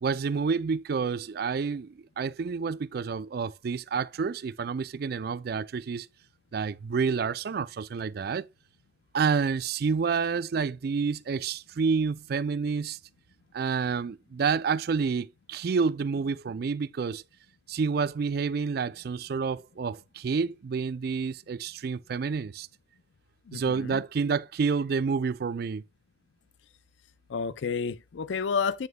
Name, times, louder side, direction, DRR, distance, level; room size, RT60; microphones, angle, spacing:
voice 1, 0.0-6.1 6.5-8.5 9.1-13.0 13.5-17.2 17.7-22.7 23.5-25.8, right 5 dB, 55° right, 0.4 m, -29 dB
voice 2, 23.5-24.0 27.3-28.9, left 5 dB, 80° left, 0.4 m, -30 dB
8.9 x 6.5 x 2.2 m
head